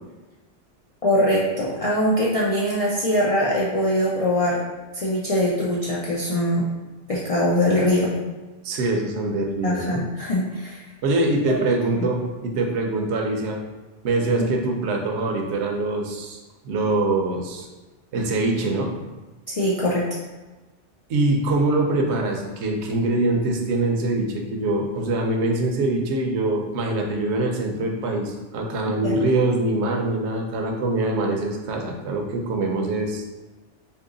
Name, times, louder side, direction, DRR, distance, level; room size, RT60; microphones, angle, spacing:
voice 1, 1.0-4.6 4.9-6.6 7.1-8.1 9.6-10.8 14.4-14.5 19.5-20.0 28.9-29.2, left 1 dB, 60° left, -6 dB, 0.3 m, -22 dB
voice 2, 8.6-10.0 11.0-13.6 14.0-16.4 16.6-17.7 18.1-18.9 21.1-33.2, right 2 dB, 70° right, 1 dB, 0.9 m, -24 dB
2.9 x 2.7 x 3.7 m, 1.2 s
omnidirectional pair, 1.2 m